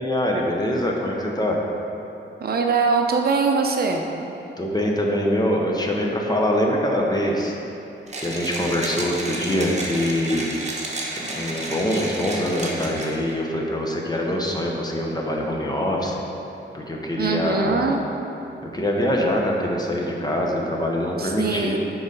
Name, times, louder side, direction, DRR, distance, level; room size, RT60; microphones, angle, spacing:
voice 1, 0.0-1.6 4.6-7.5 8.2-10.5 11.2-16.2 16.7-17.9 18.6-21.8, left 1 dB, 20° left, -1 dB, 0.9 m, -24 dB
voice 2, 2.4-4.0 17.2-18.0 21.2-21.8, right 4 dB, 50° right, 3 dB, 0.6 m, -22 dB
Mechanisms, 8.1-13.3, right 1 dB, 35° right, 1.1 m, -31 dB
7.9 x 3.9 x 5.4 m, 2.9 s
cardioid pair, 100°, 20 cm